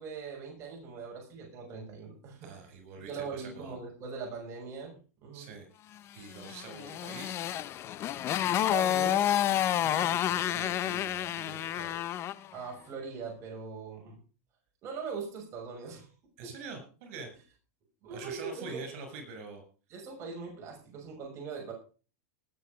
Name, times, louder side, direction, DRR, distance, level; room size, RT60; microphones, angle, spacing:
voice 1, 0.0-2.5 3.1-5.5 8.5-9.3 11.5-11.6 12.5-14.2 14.8-16.1 16.4-16.5 18.0-18.8 19.9-21.7, right 5 dB, 35° right, 0 dB, 6.4 m, -41 dB
voice 2, 2.4-3.7 5.3-5.7 6.1-7.4 9.8-12.0 16.4-17.3 18.1-19.6, right 4 dB, 60° right, 6 dB, 7.5 m, -45 dB
Motorcycle, 6.4-12.5, left 11 dB, 30° left, 0.8 m, -29 dB
19.0 x 8.2 x 5.2 m, 0.36 s
supercardioid pair, 140°, 8 cm